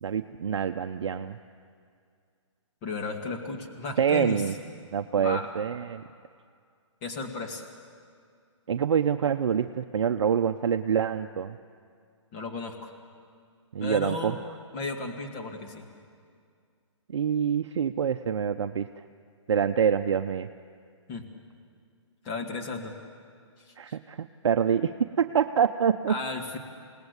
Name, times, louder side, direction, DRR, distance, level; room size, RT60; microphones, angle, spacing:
voice 1, 0.0-1.4 4.0-4.5 4.9-6.0 8.7-11.6 13.7-14.4 17.1-18.9 19.5-20.5 23.8-24.9 25.2-26.1, right 7 dB, 60° right, 7 dB, 0.7 m, -26 dB
voice 2, 2.8-4.4 5.2-5.5 7.0-7.6 12.3-12.9 13.8-14.4 14.7-15.8 21.1-21.2 22.2-22.9 23.9-24.0 26.1-26.6, left 3 dB, 20° left, 3 dB, 2.2 m, -34 dB
28.5 x 18.5 x 8.2 m, 2.2 s
hypercardioid pair, 160°, 16 cm